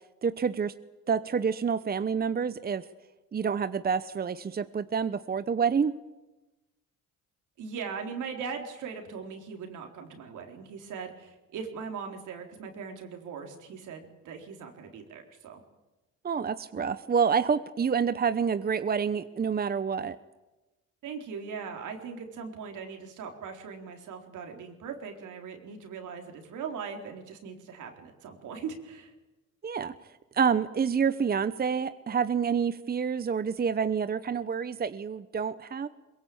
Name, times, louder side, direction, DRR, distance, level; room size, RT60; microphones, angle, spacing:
voice 1, 0.2-0.7 1.1-2.8 3.3-5.9 16.2-20.2 29.6-29.9 30.3-35.9, right 6 dB, 30° right, 13 dB, 0.9 m, -28 dB
voice 2, 7.6-15.6 21.0-29.1, right 6 dB, 80° right, 3 dB, 4.1 m, -40 dB
22.5 x 22.0 x 8.7 m, 1.1 s
cardioid pair, 90°, 30 cm